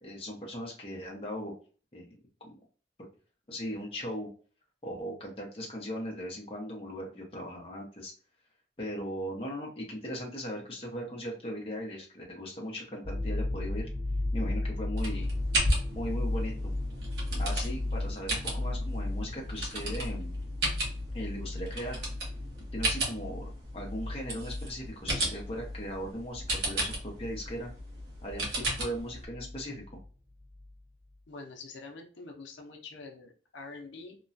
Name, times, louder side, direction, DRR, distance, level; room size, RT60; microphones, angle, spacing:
voice 1, 0.0-1.5 1.9-2.1 2.4-2.6 3.5-4.3 4.8-8.1 8.8-13.9 14.3-15.3 15.9-16.7 17.4-20.4 21.1-22.0 22.7-27.7 28.2-28.5 28.8-30.0, equal, 30° left, -1 dB, 0.7 m, -38 dB
sound 1, 13.0-30.1 30.4-30.7, left 2 dB, 50° right, 1.2 m, -36 dB
sound 2, 15.0-29.2, right 1 dB, 70° right, 1.1 m, -35 dB
voice 2, 31.3-34.2, left 3 dB, 90° left, 2 dB, 0.6 m, -45 dB
2.9 x 2.2 x 2.6 m, 0.40 s
head